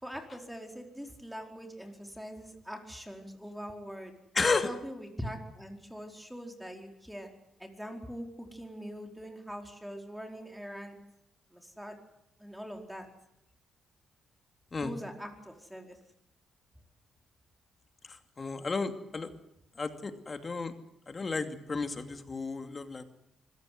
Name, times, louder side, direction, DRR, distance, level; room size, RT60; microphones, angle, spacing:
voice 1, 0.0-4.1 4.6-7.3 7.6-11.0 11.5-11.9 12.4-13.0 14.8-16.0, equal, 5° right, 4 dB, 4.6 m, -43 dB
voice 2, 4.3-4.7 14.7-14.9 18.1-19.3 19.8-20.7 21.1-23.0, left 4 dB, 35° left, 8 dB, 2.6 m, -33 dB
25.0 x 16.0 x 9.4 m, 0.82 s
cardioid pair, 75°, 0 cm